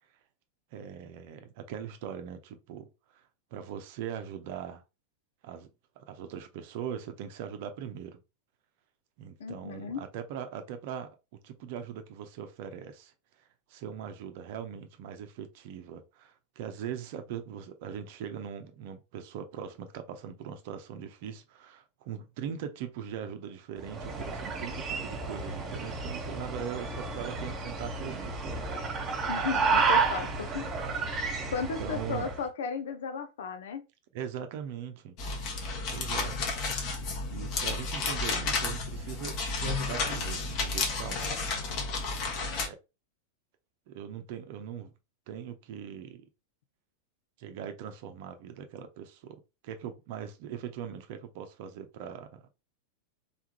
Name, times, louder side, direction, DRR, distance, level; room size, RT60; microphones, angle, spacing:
voice 1, 0.7-3.2 3.5-4.8 5.4-5.7 6.0-8.2 9.2-11.2 11.4-13.1 13.7-28.7 31.6-32.3 34.1-35.1 35.9-36.4 36.8-36.9 37.3-41.4 42.6-42.8 43.9-44.9 45.3-46.3 47.4-52.5, right 8 dB, 50° right, 0.8 m, -40 dB
voice 2, 9.4-10.0 29.3-30.7 31.5-33.8, left 5 dB, 60° left, 0.9 m, -35 dB
sound 1, 23.8-32.5, right 4 dB, 25° right, 1.5 m, -31 dB
sound 2, 35.2-42.7, left 3 dB, 40° left, 1.3 m, -32 dB
4.0 x 3.6 x 3.0 m
figure-of-eight pair, 90°, 0 cm